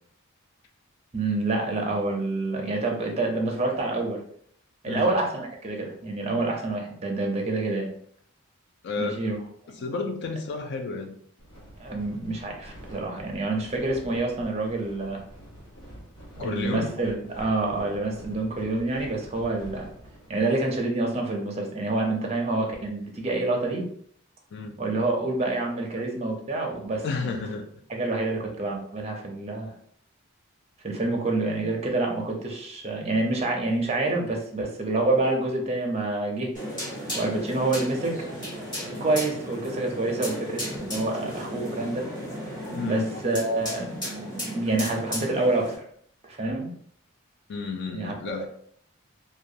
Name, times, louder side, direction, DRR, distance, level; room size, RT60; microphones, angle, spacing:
voice 1, 1.1-4.2 4.8-7.9 9.0-9.4 11.8-15.2 16.4-19.9 20.3-23.8 24.8-27.4 27.9-29.7 30.8-36.5 37.1-42.1 42.7-45.8 46.2-46.7 47.9-48.5, right 2 dB, 30° right, 0.5 m, -27 dB
voice 2, 8.8-9.2 9.8-11.2 16.4-17.0 24.5-24.8 27.0-27.7 42.7-43.1 47.5-48.5, left 3 dB, 50° left, 0.3 m, -31 dB
sound 1, 11.4-20.4, equal, 90° left, 1.0 m, -47 dB
sound 2, 36.5-45.7, equal, 20° left, 1.0 m, -35 dB
2.4 x 2.2 x 2.7 m
head